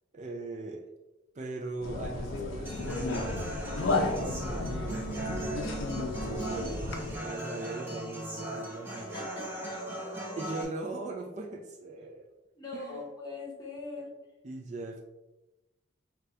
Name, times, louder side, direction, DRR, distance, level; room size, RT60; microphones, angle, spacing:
voice 1, 0.1-0.9 1.3-3.5 3.9-5.7 6.2-9.3 10.4-12.3 12.7-13.0 14.4-15.0, right 3 dB, 35° right, 1 dB, 0.3 m, -40 dB
sound 1, 1.8-7.1, left 2 dB, 85° left, 0.5 m, -33 dB
Human voice / Acoustic guitar, 2.7-10.6, right 1 dB, 10° right, 0.7 m, -38 dB
voice 2, 8.9-9.4 9.9-10.2 12.6-14.1, left 3 dB, 20° left, -2 dB, 0.9 m, -42 dB
3.9 x 2.3 x 4.3 m, 1.0 s
head